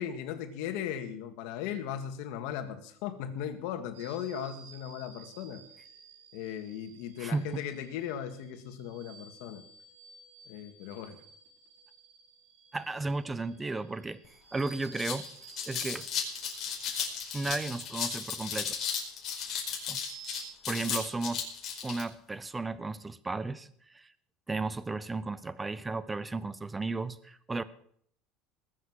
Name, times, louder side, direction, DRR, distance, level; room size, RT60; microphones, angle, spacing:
voice 1, 0.0-5.6 6.3-9.6 10.5-11.2, left 9 dB, 75° left, 8 dB, 1.9 m, -37 dB
sound 1, 3.9-20.5, right 6 dB, 85° right, 3.1 m, -54 dB
voice 2, 7.2-7.6 12.7-14.2 14.5-15.2 15.6-16.1 17.3-18.7 19.9-20.0 20.7-21.5 21.8-24.1 24.5-27.6, right 3 dB, 15° right, 17 dB, 0.7 m, -34 dB
sound 2, 14.2-14.3 14.7-22.0, left 7 dB, 40° left, 4.9 m, -35 dB
20.0 x 7.8 x 6.3 m, 0.65 s
cardioid pair, 135°, 0 cm